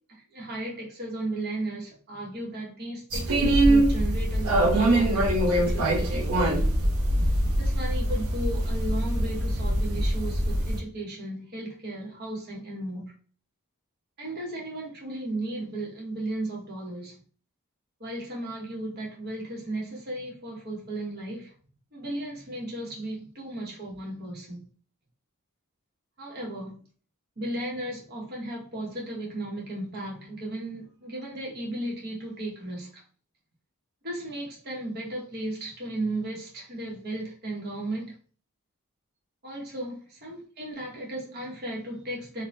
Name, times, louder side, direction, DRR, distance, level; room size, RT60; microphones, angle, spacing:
voice 1, 0.1-6.1 7.6-13.1 14.2-17.2 18.0-21.5 21.9-24.6 26.2-26.8 27.4-33.0 34.0-38.1 39.4-42.4, right 1 dB, 45° right, -3 dB, 0.9 m, -35 dB
sound 1, 3.1-10.8, right 1 dB, 80° right, 0.7 m, -23 dB
2.6 x 2.1 x 3.1 m, 0.41 s
head